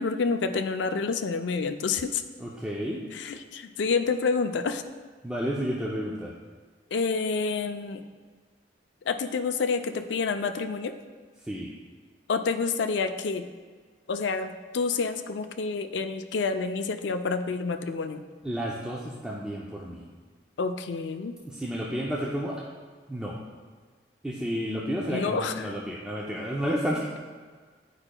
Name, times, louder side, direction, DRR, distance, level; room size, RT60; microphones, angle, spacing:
voice 1, 0.0-2.2 3.1-4.8 6.9-8.0 9.1-10.9 12.3-13.4 14.1-18.2 20.6-21.3 25.1-25.6, left 4 dB, 75° left, 8 dB, 0.4 m, -28 dB
voice 2, 2.4-3.0 5.2-6.3 11.4-11.7 18.4-20.0 21.4-22.7 23.1-23.4 24.2-27.2, equal, 5° right, -4 dB, 0.4 m, -31 dB
9.6 x 4.8 x 2.2 m, 1.5 s
head